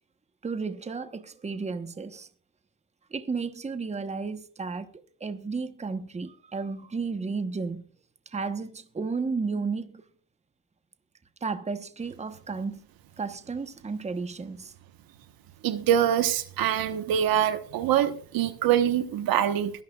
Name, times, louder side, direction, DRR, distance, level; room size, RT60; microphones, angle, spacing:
voice 1, 0.4-2.3 3.1-4.9 5.2-7.8 8.3-10.0 11.4-12.8 13.2-14.7, right 4 dB, 20° right, 1.0 m, -33 dB
voice 2, 15.6-19.7, right 10 dB, 70° right, 1.3 m, -24 dB
22.5 x 11.5 x 2.4 m
cardioid pair, 95°, 36 cm